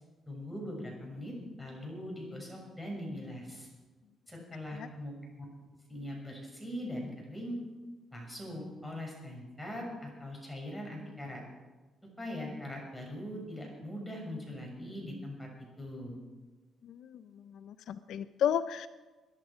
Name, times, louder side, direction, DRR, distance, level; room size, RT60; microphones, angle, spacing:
voice 1, 0.3-3.7 4.3-5.4 5.9-7.6 8.1-11.4 12.2-15.5 15.8-16.2, left 1 dB, 5° left, -1 dB, 6.8 m, -41 dB
voice 2, 16.8-18.9, left 9 dB, 75° left, 13 dB, 0.5 m, -33 dB
22.5 x 11.0 x 5.1 m, 1.2 s
cardioid pair, 90°, 0 cm